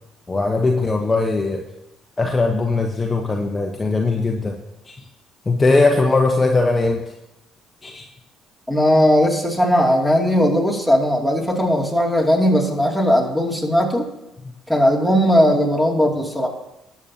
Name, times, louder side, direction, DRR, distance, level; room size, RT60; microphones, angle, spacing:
voice 1, 0.3-1.6 2.2-4.6 4.9-5.0 5.5-7.0 7.8-8.1, left 3 dB, 25° left, 2 dB, 1.1 m, -19 dB
voice 2, 8.7-14.1 14.7-16.5, equal, 5° right, 0 dB, 2.7 m, -18 dB
19.5 x 7.1 x 2.9 m, 0.94 s
figure-of-eight pair, 50°, 0 cm